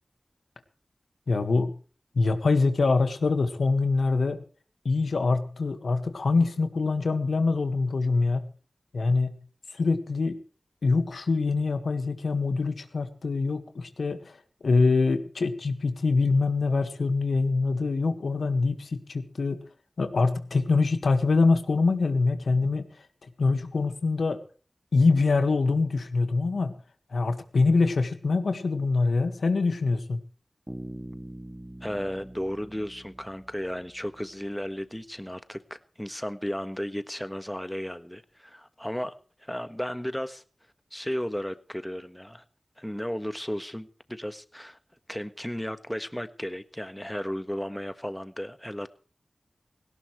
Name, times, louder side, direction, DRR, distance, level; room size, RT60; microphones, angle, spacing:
voice 1, 1.3-1.7 2.2-4.4 4.9-8.5 8.9-9.3 9.7-10.4 10.8-14.4 14.6-19.6 20.0-22.9 23.4-24.4 24.9-26.7 27.1-30.2, left 3 dB, 90° left, 8 dB, 1.7 m, -24 dB
Bass guitar, 30.7-34.4, right 1 dB, 10° right, 2.3 m, -43 dB
voice 2, 31.8-39.2 39.4-40.4 40.9-42.4 42.8-44.8 45.1-48.9, equal, 10° left, 11 dB, 1.5 m, -34 dB
18.0 x 17.0 x 3.3 m, 0.38 s
cardioid pair, 45°, 0 cm